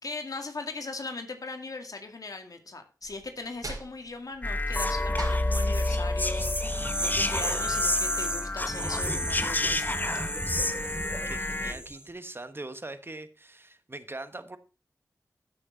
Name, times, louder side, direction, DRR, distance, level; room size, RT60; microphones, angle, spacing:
voice 1, 0.0-10.0, left 3 dB, 70° left, 2.1 m, -39 dB
sound 1, 3.0-8.1, right 2 dB, 70° right, 5.2 m, -44 dB
sound 2, 4.4-11.7, left 2 dB, 30° left, 1.0 m, -29 dB
sound 3, 6.2-12.0, equal, 15° right, 2.3 m, -33 dB
voice 2, 11.2-14.6, right 2 dB, 35° right, 1.3 m, -41 dB
14.0 x 6.5 x 4.0 m
wide cardioid pair, 50°, 6 cm